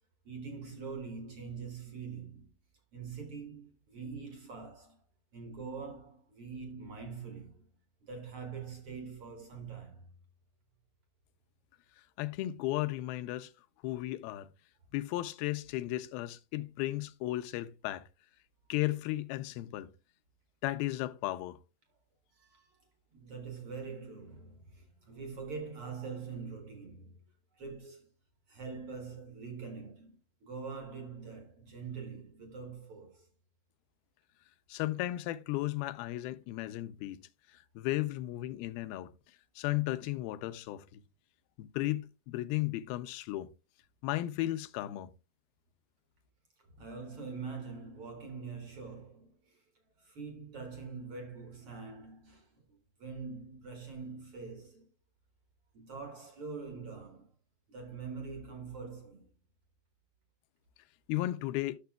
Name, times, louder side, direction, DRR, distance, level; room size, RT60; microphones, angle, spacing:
voice 1, 0.2-2.5 2.9-5.0 5.3-7.7 8.0-10.1 22.3-22.8 23.1-27.2 27.5-28.1 28.5-33.3 46.7-49.6 49.9-54.9 55.7-57.3 57.7-59.3, right 5 dB, 70° right, 1.3 m, -44 dB
voice 2, 12.2-13.5 13.8-14.5 14.9-18.0 18.7-19.9 20.6-21.6 34.7-37.2 37.5-39.1 39.6-41.0 41.6-43.5 44.0-45.1 61.1-61.8, left 16 dB, 85° left, 2.4 m, -35 dB
12.0 x 6.7 x 2.2 m
omnidirectional pair, 4.3 m